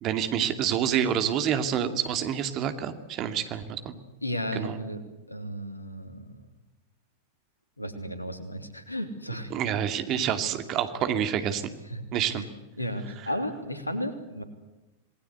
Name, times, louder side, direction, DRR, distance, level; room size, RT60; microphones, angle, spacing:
voice 1, 0.0-3.9 4.5-4.8 9.5-11.6 12.1-12.4, right 9 dB, 35° right, 9 dB, 2.6 m, -27 dB
voice 2, 4.2-5.0 5.3-6.4 7.8-9.5 11.9-12.0 12.3-12.5 12.8-14.4, equal, 85° left, 9 dB, 3.1 m, -34 dB
27.5 x 20.0 x 8.2 m, 1.0 s
figure-of-eight pair, 90°, 0 cm